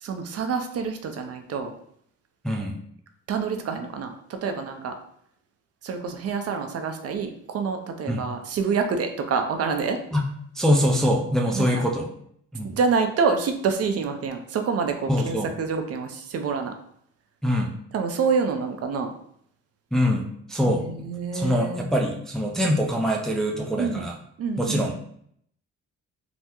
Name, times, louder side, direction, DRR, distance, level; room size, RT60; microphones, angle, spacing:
voice 1, 0.0-1.7 3.3-4.9 5.8-10.0 11.5-11.8 12.6-16.7 17.9-19.1 20.7-21.8 23.8-24.1 24.4-24.9, right 5 dB, 55° right, 6 dB, 0.5 m, -27 dB
voice 2, 2.4-2.8 8.1-8.2 10.1-10.2 10.6-12.1 12.5-12.8 15.1-15.5 17.4-17.7 19.9-20.2 20.5-20.8 21.3-24.2 24.6-24.9, equal, ahead, 0 dB, 0.4 m, -23 dB
3.4 x 2.0 x 2.9 m, 0.68 s
cardioid pair, 90°, 30 cm